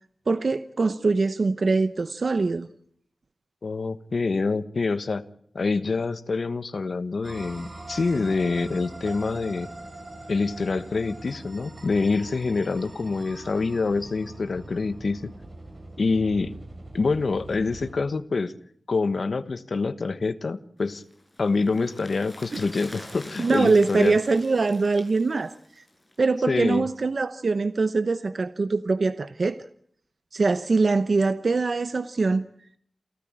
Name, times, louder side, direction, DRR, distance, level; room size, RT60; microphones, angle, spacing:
voice 1, 0.3-2.7 22.5-22.6 23.4-25.5 26.2-29.6 30.3-32.5, right 3 dB, 60° right, 12 dB, 0.9 m, -23 dB
voice 2, 3.6-5.2 5.5-9.7 10.3-15.3 16.0-16.6 16.9-18.5 18.9-21.0 21.4-24.2 26.5-26.9, left 4 dB, 65° left, 12 dB, 1.2 m, -26 dB
sound 1, 7.2-17.9, right 2 dB, 40° right, 7.9 m, -42 dB
sound 2, 20.9-26.3 26.6-26.7, left 1 dB, 15° left, 7.3 m, -45 dB
29.0 x 14.0 x 8.8 m, 0.66 s
wide cardioid pair, 110°, 0 cm